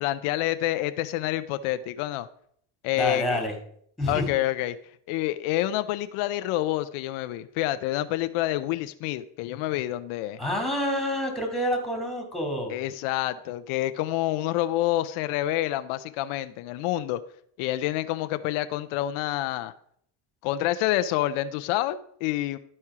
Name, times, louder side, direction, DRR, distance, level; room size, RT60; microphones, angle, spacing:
voice 1, 0.0-2.3 2.8-3.4 4.1-4.8 5.1-10.4 12.7-17.2 17.6-19.7 20.4-22.6, left 14 dB, 85° left, 11 dB, 0.7 m, -28 dB
voice 2, 3.0-3.6 4.0-4.3 10.4-12.7, equal, ahead, 2 dB, 2.3 m, -27 dB
12.5 x 4.4 x 4.8 m, 0.64 s
cardioid pair, 120°, 49 cm